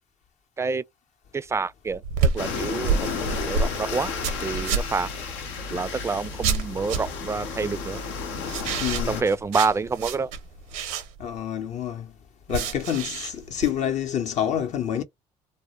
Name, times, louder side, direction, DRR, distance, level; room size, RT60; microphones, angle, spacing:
voice 1, 1.3-3.2 3.5-4.1 4.4-5.1 5.7-8.0 9.0-10.3, right 4 dB, 20° right, 0.3 m, -27 dB
sound 1, 1.9-5.1 6.4-7.3 8.5-11.4 12.5-13.7, right 5 dB, 85° right, 0.6 m, -28 dB
sound 2, 2.4-9.2, left 5 dB, 90° left, 0.7 m, -32 dB
voice 2, 8.8-9.2 11.2-12.1 12.5-15.0, left 9 dB, 55° left, 0.7 m, -27 dB
2.1 x 2.1 x 2.8 m
supercardioid pair, 65°, 15 cm